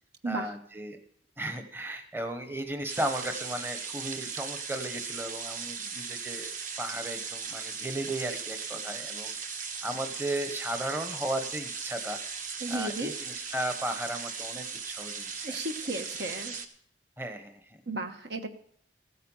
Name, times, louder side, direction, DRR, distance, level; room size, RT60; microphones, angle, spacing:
voice 1, 0.3-1.0 1.4-6.5 6.8-9.4 9.8-12.2 12.7-15.5 17.2-17.8, right 1 dB, 15° right, 7 dB, 1.0 m, -35 dB
sound 1, 2.9-16.7, right 5 dB, 45° right, 1.2 m, -38 dB
voice 2, 12.6-13.1 15.4-16.6 17.9-18.5, right 2 dB, 65° right, 6 dB, 1.4 m, -34 dB
15.5 x 9.4 x 5.6 m, 0.62 s
head